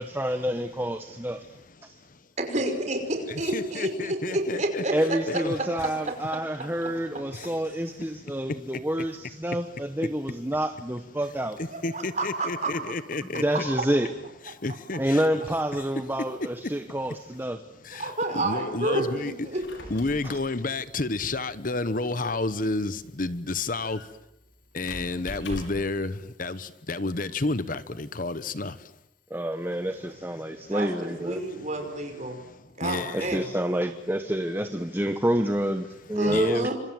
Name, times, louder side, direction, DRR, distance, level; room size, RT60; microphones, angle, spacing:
voice 1, 0.0-1.5 1.8-1.9 4.9-11.6 13.3-14.1 15.0-17.6 20.2-20.3 29.3-31.4 33.1-36.7, right 1 dB, 10° right, 1.0 m, -28 dB
voice 2, 2.4-6.7 11.7-12.7 13.5-13.6 16.2-16.4 17.9-19.6 30.7-32.4 32.8-33.5 36.2-36.7, right 2 dB, 40° right, 5.5 m, -30 dB
voice 3, 3.3-4.8 5.3-5.5 11.8-13.4 14.6-15.5 17.9-18.0 18.3-19.3 19.9-24.0 24.7-26.1 26.4-28.7 32.8-33.3 36.3-36.6, left 3 dB, 45° left, 1.0 m, -30 dB
Squeak, 19.4-26.0, left 1 dB, 65° left, 5.7 m, -44 dB
28.5 x 26.0 x 7.8 m
head